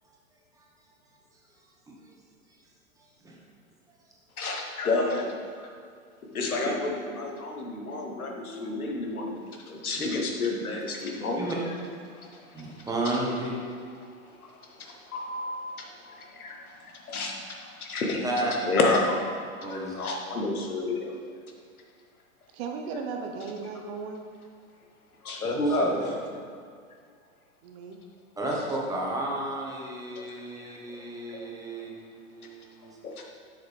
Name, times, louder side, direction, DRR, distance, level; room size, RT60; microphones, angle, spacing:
voice 1, 4.4-5.3 6.3-11.5 12.1-12.9 14.4-16.5 17.1-17.3 17.6-21.2 25.2-26.0 30.6-30.7 31.3-31.4 33.0-33.2, left 2 dB, 85° left, 1 dB, 1.4 m, -30 dB
voice 2, 12.5-13.5 18.2-18.5 19.6-19.9 25.5-26.1 28.4-31.9 32.3-32.9, right 1 dB, 10° right, -4 dB, 1.3 m, -32 dB
voice 3, 22.5-24.2 27.6-28.0, right 5 dB, 45° right, 3 dB, 1.0 m, -36 dB
7.7 x 6.5 x 3.5 m, 2.1 s
hypercardioid pair, 110°, 43 cm